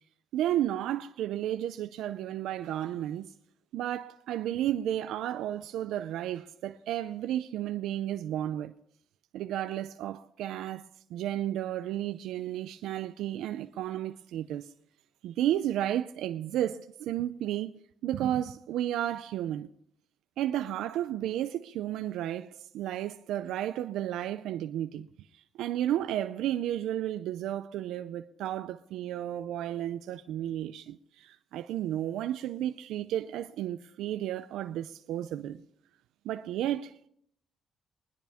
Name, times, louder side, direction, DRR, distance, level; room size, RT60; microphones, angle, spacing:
voice 1, 0.3-3.3 3.7-8.7 9.3-14.7 15.2-17.7 18.0-19.7 20.4-25.1 25.3-35.6 36.2-37.1, right 12 dB, 85° right, 0.5 m, -33 dB
23.5 x 10.0 x 3.5 m
cardioid pair, 90°, 0 cm